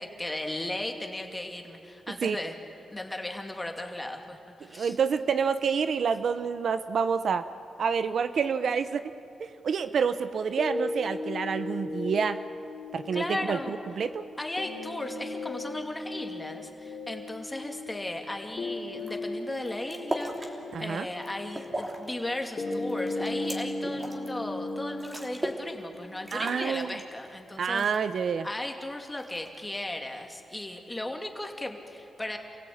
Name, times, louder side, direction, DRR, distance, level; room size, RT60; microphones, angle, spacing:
voice 1, 0.0-2.6 2.9-5.0 13.1-13.7 14.4-27.9 28.4-32.4, left 1 dB, 15° left, 3 dB, 2.6 m, -36 dB
voice 2, 4.7-7.4 7.8-9.1 9.4-12.4 12.9-14.2 20.7-21.1 26.3-26.9 27.6-28.5, right 6 dB, 65° right, 11 dB, 0.8 m, -28 dB
sound 1, 10.6-26.6, left 2 dB, 50° left, 3.3 m, -37 dB
sound 2, 19.0-19.2 19.5-20.5 21.0-22.1 22.4-24.3 24.7-24.8 25.0-25.7 25.9-26.0 26.3-27.3 27.8-28.3 29.2-29.7, right 1 dB, 20° right, 3.1 m, -37 dB
28.0 x 16.5 x 8.7 m, 2.7 s
cardioid pair, 90°, 0 cm